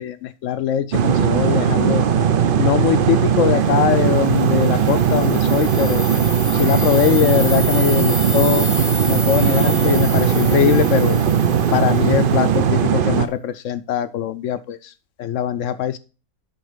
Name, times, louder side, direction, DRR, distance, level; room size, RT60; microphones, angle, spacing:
voice 1, 0.0-2.0 2.6-6.1 6.5-8.7 9.1-11.2 11.7-14.9 15.2-16.0, left 9 dB, 65° left, 13 dB, 0.8 m, -21 dB
sound 1, 0.9-13.3, right 8 dB, 60° right, 0.6 m, -18 dB
sound 2, 4.3-12.2, equal, 15° left, 0.6 m, -30 dB
7.8 x 5.3 x 5.0 m, 0.33 s
omnidirectional pair, 1.6 m